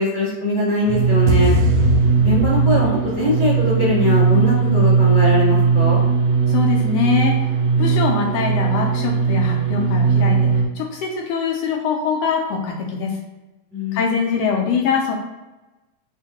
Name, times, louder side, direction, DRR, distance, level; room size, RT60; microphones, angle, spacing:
voice 1, 0.0-1.6 2.2-6.0 13.7-14.1, left 1 dB, 40° left, -10 dB, 1.4 m, -21 dB
sound 1, 0.8-10.6, right 5 dB, 75° right, 1.5 m, -18 dB
voice 2, 6.5-7.5 7.8-13.2 13.9-15.1, left 5 dB, 80° left, 0 dB, 1.5 m, -23 dB
6.1 x 2.2 x 2.8 m, 1.1 s
omnidirectional pair, 3.3 m